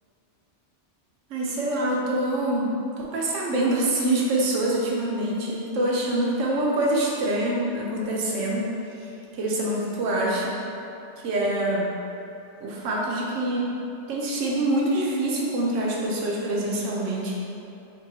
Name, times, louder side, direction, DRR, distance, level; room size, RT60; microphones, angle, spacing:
voice 1, 1.3-8.7 9.0-9.1 9.4-10.6 11.2-12.0 12.6-13.7 14.1-17.3, right 1 dB, 90° right, -3 dB, 1.0 m, -25 dB
3.0 x 2.8 x 3.9 m, 2.8 s
omnidirectional pair, 1.2 m